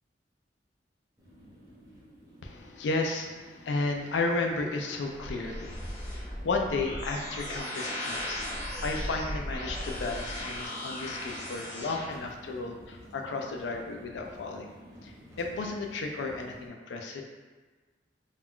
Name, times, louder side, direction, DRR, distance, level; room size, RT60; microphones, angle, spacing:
sound 1, 1.2-16.7, equal, 15° right, 0.6 m, -52 dB
voice 1, 2.4-8.4 8.8-14.7 15.0-17.2, left 3 dB, 75° left, 3 dB, 0.4 m, -33 dB
sound 2, 4.5-12.0, left 1 dB, 25° left, 0.6 m, -37 dB
2.4 x 2.2 x 3.6 m, 1.3 s
head